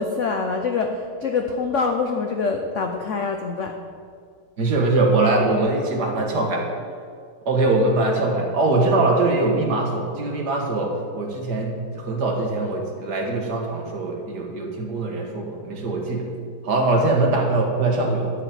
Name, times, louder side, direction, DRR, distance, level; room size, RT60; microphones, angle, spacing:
voice 1, 0.0-3.7 16.9-17.0, left 4 dB, 70° left, 3 dB, 0.7 m, -25 dB
voice 2, 4.6-6.7 7.5-16.3 16.6-18.3, right 2 dB, 50° right, 1 dB, 2.0 m, -22 dB
12.0 x 5.1 x 8.8 m, 2.1 s
omnidirectional pair, 2.4 m